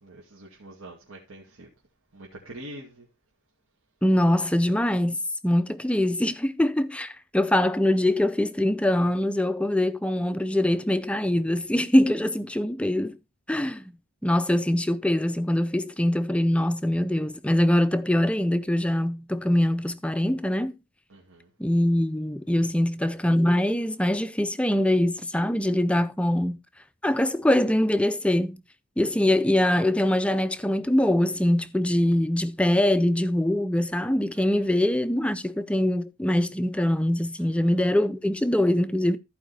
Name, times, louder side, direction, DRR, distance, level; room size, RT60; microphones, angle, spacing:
voice 1, 0.0-1.7 2.1-3.1 21.1-21.5 34.3-34.7 37.4-37.8, right 1 dB, 70° right, 2.1 m, -45 dB
voice 2, 4.0-13.2 13.5-13.9 14.2-20.7 21.6-26.6 27.0-28.6 29.0-39.2, left 1 dB, 5° left, 0.4 m, -23 dB
14.0 x 4.8 x 4.2 m
head